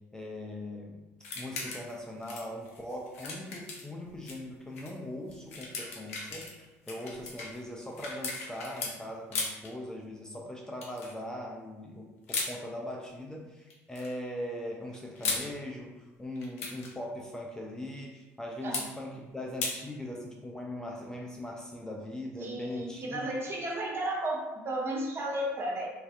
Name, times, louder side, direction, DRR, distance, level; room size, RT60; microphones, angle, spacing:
voice 1, 0.1-1.0 1.4-23.3, left 1 dB, 10° left, -2 dB, 0.4 m, -40 dB
sound 1, 1.2-2.0 2.2-4.4 4.8-4.9 5.3-8.9 9.3-9.7 10.8-11.1 12.3-12.5 13.7-14.1 14.9-15.5 16.4-16.9 18.7-18.9 19.6-19.8, left 4 dB, 80° left, 0.4 m, -37 dB
voice 2, 22.4-25.9, right 1 dB, 35° right, -2 dB, 0.7 m, -33 dB
2.5 x 2.3 x 2.3 m, 1.1 s
figure-of-eight pair, 60°, 7 cm